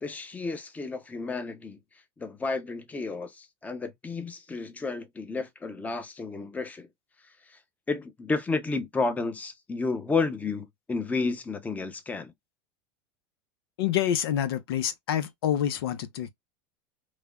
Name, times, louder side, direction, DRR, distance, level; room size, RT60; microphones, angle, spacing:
voice 1, 0.0-1.8 2.2-6.9 7.9-12.3, left 3 dB, 10° left, 0.6 m, -31 dB
voice 2, 13.8-16.3, left 10 dB, 85° left, 0.6 m, -27 dB
3.2 x 2.1 x 2.3 m
supercardioid pair, 130°, 12 cm